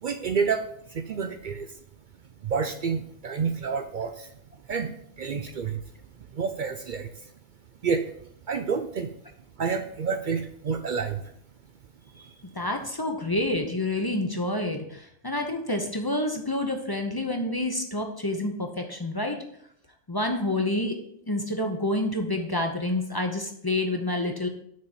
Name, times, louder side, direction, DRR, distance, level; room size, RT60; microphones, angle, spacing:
voice 1, 0.0-1.7 2.4-4.3 4.7-4.9 5.2-5.8 6.3-7.2 7.8-8.1 8.5-9.1 9.6-11.2, right 5 dB, 65° right, 8 dB, 0.4 m, -29 dB
voice 2, 12.5-19.4 20.1-21.0 21.3-24.5, left 1 dB, 25° left, 4 dB, 0.5 m, -28 dB
6.4 x 4.1 x 6.5 m, 0.69 s
omnidirectional pair, 1.4 m